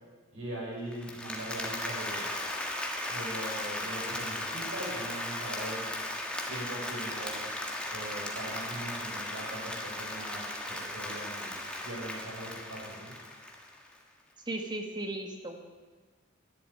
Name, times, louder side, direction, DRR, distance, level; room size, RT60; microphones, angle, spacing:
voice 1, 0.3-2.3 3.1-5.9 6.5-7.5 7.9-11.5 11.8-13.1, right 1 dB, 75° right, -3 dB, 6.0 m, -41 dB
Applause, 0.9-13.9, left 1 dB, 5° left, 1.6 m, -37 dB
voice 2, 14.4-15.6, right 1 dB, 20° right, 3 dB, 1.8 m, -36 dB
11.5 x 11.0 x 8.6 m, 1.4 s
head